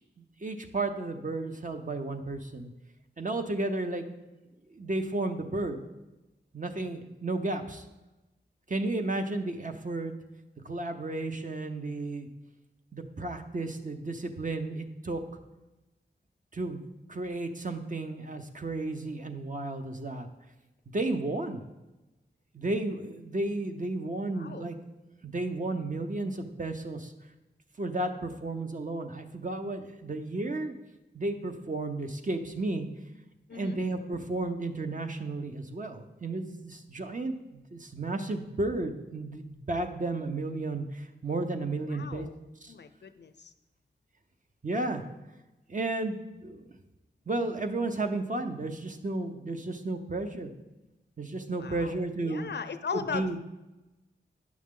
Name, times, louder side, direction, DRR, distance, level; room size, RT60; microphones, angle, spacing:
voice 1, 0.2-2.7 3.2-4.0 4.7-5.8 6.5-7.8 8.7-10.1 10.6-12.3 12.9-15.2 16.5-20.3 20.9-21.6 22.5-24.8 25.2-27.1 27.8-30.8 31.1-32.9 33.5-42.3 42.6-42.7 44.6-45.0 45.7-46.7 47.3-50.5 51.2-52.5 52.9-53.4, right 2 dB, 45° right, 6 dB, 0.8 m, -33 dB
voice 2, 24.3-24.6 33.5-33.8 41.9-42.4 42.7-43.5 51.5-53.4, left 6 dB, 65° left, 10 dB, 0.5 m, -38 dB
9.4 x 6.3 x 3.7 m, 1.0 s
wide cardioid pair, 60°, 19 cm